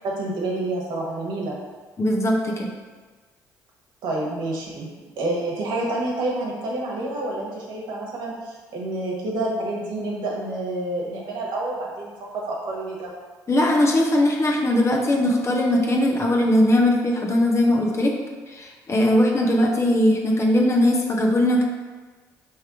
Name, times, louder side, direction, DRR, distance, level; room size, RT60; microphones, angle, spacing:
voice 1, 0.0-1.6 4.0-4.9 5.2-13.1, right 2 dB, 65° right, -3 dB, 1.2 m, -28 dB
voice 2, 2.0-2.7 13.5-18.2 18.5-21.6, left 1 dB, 35° left, 0 dB, 0.9 m, -20 dB
3.4 x 3.2 x 4.8 m, 1.4 s
hypercardioid pair, 55°, 8 cm